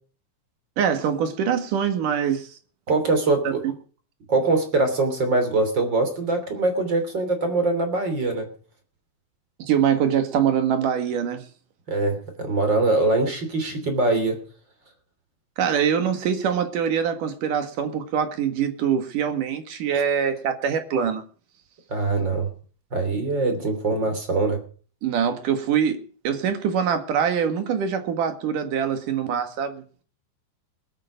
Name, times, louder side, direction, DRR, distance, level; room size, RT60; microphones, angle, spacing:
voice 1, 0.8-2.5 3.4-3.5 9.6-11.4 15.6-21.2 25.0-30.0, right 8 dB, 65° right, 8 dB, 3.1 m, -24 dB
voice 2, 2.9-3.6 4.3-8.5 11.9-14.4 19.9-20.0 21.9-22.5 22.9-24.6, right 3 dB, 30° right, 7 dB, 3.4 m, -23 dB
20.5 x 8.9 x 5.2 m, 0.41 s
omnidirectional pair, 4.3 m